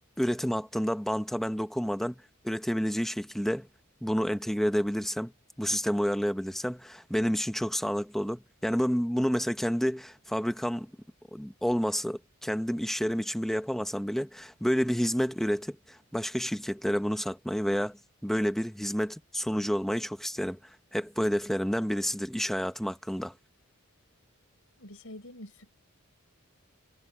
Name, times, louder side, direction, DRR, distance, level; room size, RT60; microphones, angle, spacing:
voice 1, 0.2-3.7 4.0-5.3 5.6-10.9 11.3-18.0 18.2-23.3, equal, ahead, 0.9 m, -29 dB
voice 2, 24.8-25.7, left 1 dB, 70° left, 4.4 m, -46 dB
head